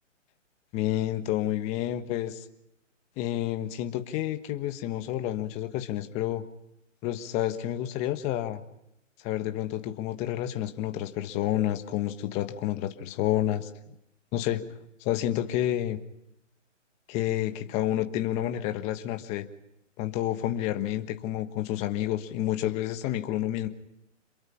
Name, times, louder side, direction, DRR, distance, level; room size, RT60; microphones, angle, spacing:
voice 1, 0.7-2.4 3.2-6.4 7.0-8.6 9.2-13.7 14.3-14.6 15.0-16.0 17.1-19.5 20.0-23.7, left 13 dB, 15° left, 8 dB, 1.4 m, -29 dB
27.5 x 22.0 x 5.7 m, 0.82 s
hypercardioid pair, 150°, 38 cm